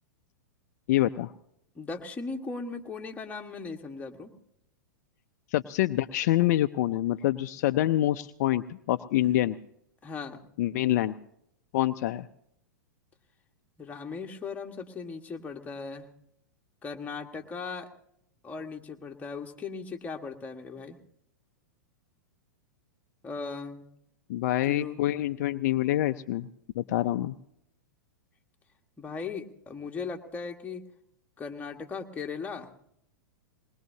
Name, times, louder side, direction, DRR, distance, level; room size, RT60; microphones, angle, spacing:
voice 1, 0.9-1.3 5.5-9.6 10.6-11.1 11.7-12.3 24.3-26.5 26.8-27.3, left 14 dB, 55° left, 10 dB, 0.5 m, -26 dB
voice 2, 1.7-4.3 10.0-10.4 13.8-16.1 16.8-17.9 18.4-21.0 23.2-23.9 24.7-25.1 29.0-30.8 31.4-32.7, left 4 dB, 15° left, 2 dB, 1.5 m, -38 dB
20.5 x 20.5 x 2.8 m, 0.73 s
hypercardioid pair, 105°, 10 cm